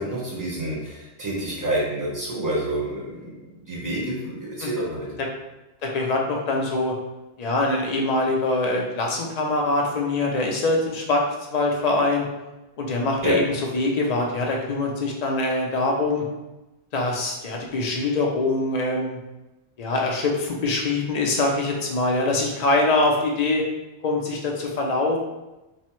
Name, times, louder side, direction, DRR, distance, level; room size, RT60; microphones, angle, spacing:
voice 1, 0.0-3.4 3.6-5.2 13.2-13.4, right 1 dB, 20° right, -6 dB, 0.7 m, -28 dB
voice 2, 5.8-6.9 7.4-11.2 11.5-12.3 12.8-13.4 13.7-16.2 16.9-19.2 19.8-23.6 24.0-25.2, left 2 dB, 55° left, 0 dB, 0.5 m, -23 dB
3.1 x 2.0 x 2.9 m, 1.0 s
omnidirectional pair, 1.1 m